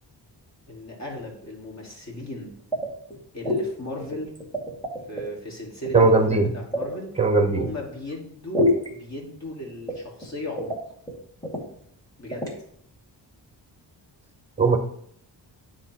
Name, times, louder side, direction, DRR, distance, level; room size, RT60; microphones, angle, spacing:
voice 1, 0.7-2.5 3.3-4.3 5.1-7.1 7.6-10.9 12.2-12.5, left 1 dB, 40° left, -2 dB, 2.1 m, -36 dB
sound 1, 2.7-3.2 3.4-3.7 4.0-5.3 5.9-6.9 8.5-8.9 9.9-10.3 10.6-10.8 11.1-11.2 11.4-11.6 12.3-12.5, left 1 dB, 10° left, 2.1 m, -26 dB
voice 2, 5.9-6.5 7.2-7.7 14.6-14.8, right 3 dB, 15° right, 6 dB, 0.9 m, -18 dB
9.9 x 3.7 x 2.9 m, 0.66 s
wide cardioid pair, 105°, 43 cm